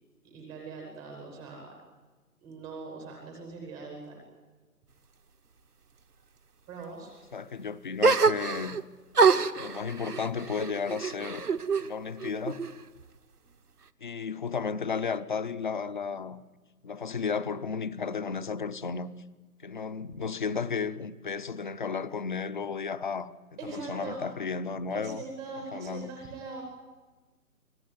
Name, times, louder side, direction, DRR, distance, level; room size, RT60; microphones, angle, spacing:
voice 1, 0.2-1.7 2.4-4.2 6.7-7.1 23.6-24.2 24.9-26.6, right 4 dB, 5° right, 0.7 m, -41 dB
voice 2, 7.3-8.8 9.6-11.4 11.8-12.6 14.0-16.4 16.8-19.1 19.6-23.3 23.6-25.2 25.7-26.1, left 5 dB, 35° left, 0.7 m, -33 dB
sound 1, 8.0-8.8 9.1-11.9 12.2-13.0, right 4 dB, 85° right, 1.4 m, -26 dB
25.0 x 16.5 x 9.7 m
figure-of-eight pair, 150°, 45 cm